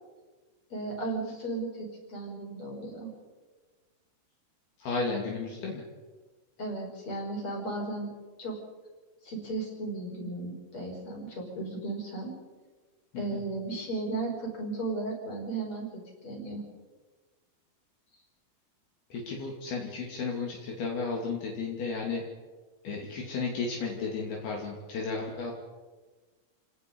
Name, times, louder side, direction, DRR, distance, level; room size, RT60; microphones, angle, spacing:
voice 1, 0.7-3.1 6.6-8.1 8.4-8.6 9.2-12.3 13.2-16.6, right 2 dB, 30° left, 0 dB, 6.2 m, -35 dB
voice 2, 4.8-5.8 13.1-13.4 19.1-22.2 22.8-25.5, left 4 dB, 70° left, -1 dB, 4.6 m, -33 dB
29.0 x 18.5 x 5.4 m, 1.3 s
omnidirectional pair, 4.8 m